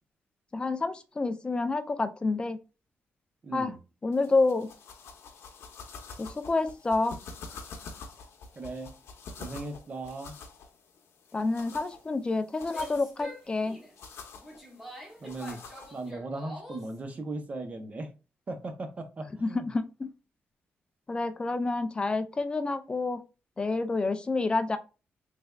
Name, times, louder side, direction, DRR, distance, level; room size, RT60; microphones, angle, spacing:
voice 1, 0.5-2.6 3.5-3.7 4.0-4.7 6.2-7.2 11.3-13.8 19.4-20.1 21.1-23.2 23.6-24.8, left 3 dB, 25° left, 0.3 m, -28 dB
voice 2, 3.4-3.8 8.6-8.9 9.4-10.3 15.2-18.1 18.5-19.7, right 2 dB, 35° right, 0.6 m, -38 dB
sound 1, 4.1-16.1, left 4 dB, 85° left, 0.7 m, -47 dB
Female speech woman speaking / Yell, 12.6-17.0, left 1 dB, 5° right, 0.9 m, -45 dB
3.4 x 3.2 x 2.2 m
wide cardioid pair, 135°, 4 cm